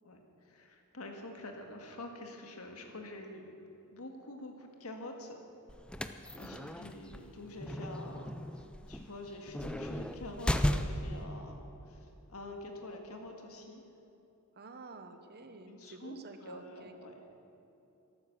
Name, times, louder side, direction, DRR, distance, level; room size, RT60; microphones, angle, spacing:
voice 1, 0.0-3.5 3.9-5.4 6.4-11.6 11.9-13.9 15.6-17.2, left 1 dB, 75° left, 3 dB, 1.9 m, -47 dB
sound 1, 5.7-11.2, equal, 5° left, 0.5 m, -35 dB
voice 2, 6.3-6.7 14.6-16.9, right 3 dB, 45° right, 7 dB, 1.0 m, -50 dB
13.5 x 12.5 x 7.2 m, 2.8 s
head